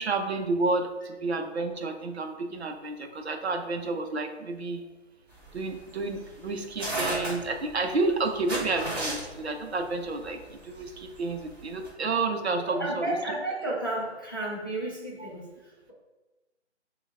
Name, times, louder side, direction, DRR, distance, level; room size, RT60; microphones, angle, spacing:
voice 1, 0.0-4.8 5.5-13.1 15.2-15.3, right 3 dB, 65° right, 5 dB, 0.7 m, -30 dB
sound 1, 5.3-11.9, right 1 dB, 20° right, 1.4 m, -34 dB
voice 2, 12.7-15.9, right 1 dB, 20° left, -7 dB, 0.5 m, -32 dB
5.2 x 2.3 x 3.3 m, 1.1 s
figure-of-eight pair, 165°, 35 cm